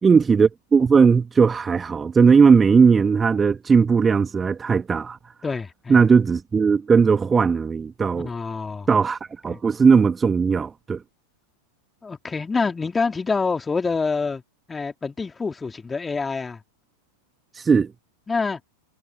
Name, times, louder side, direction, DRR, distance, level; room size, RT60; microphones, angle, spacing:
voice 1, 0.0-5.2 5.9-8.3 8.9-11.0 17.5-17.9, right 5 dB, 15° right, 1.8 m, -18 dB
voice 2, 5.4-6.0 8.2-8.9 9.5-9.6 12.0-14.4 14.7-16.6 18.3-18.6, left 4 dB, 15° left, 3.2 m, -26 dB
figure-of-eight pair, 90°, 0 cm